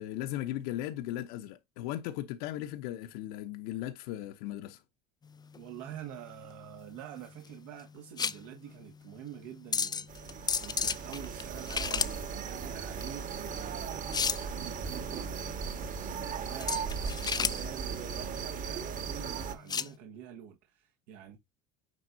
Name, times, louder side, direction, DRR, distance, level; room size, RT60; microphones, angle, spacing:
voice 1, 0.0-4.8, left 13 dB, 75° left, 1.0 m, -37 dB
sound 1, 5.3-19.9, left 6 dB, 20° left, 0.6 m, -36 dB
voice 2, 5.6-15.6 16.1-21.4, right 10 dB, 75° right, 1.9 m, -47 dB
sound 2, 10.1-19.6, right 6 dB, 40° right, 1.7 m, -37 dB
9.4 x 4.1 x 2.7 m
supercardioid pair, 105°, 20 cm